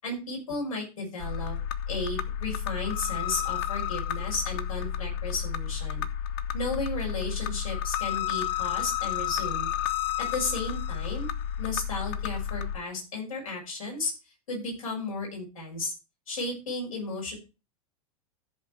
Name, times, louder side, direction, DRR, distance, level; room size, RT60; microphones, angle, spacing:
voice 1, 0.0-1.6 1.9-6.0 6.5-9.7 10.2-11.3 11.6-14.1 14.5-15.9 16.3-17.4, left 2 dB, 65° left, -2 dB, 6.1 m, -34 dB
sound 1, 1.2-12.8, left 10 dB, 45° left, 0.8 m, -31 dB
14.0 x 5.2 x 4.6 m, 0.30 s
figure-of-eight pair, 90°, 19 cm